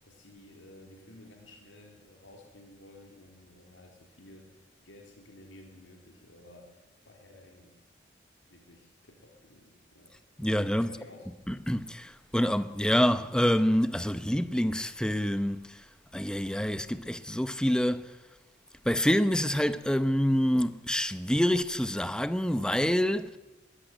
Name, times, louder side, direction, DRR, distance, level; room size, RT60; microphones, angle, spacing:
voice 1, 0.0-7.8 8.5-11.3, left 1 dB, 80° left, 3.7 m, -53 dB
voice 2, 10.4-10.9 11.5-15.8 16.1-18.2 18.8-23.4, equal, 5° left, 0.8 m, -27 dB
21.0 x 16.5 x 9.2 m
head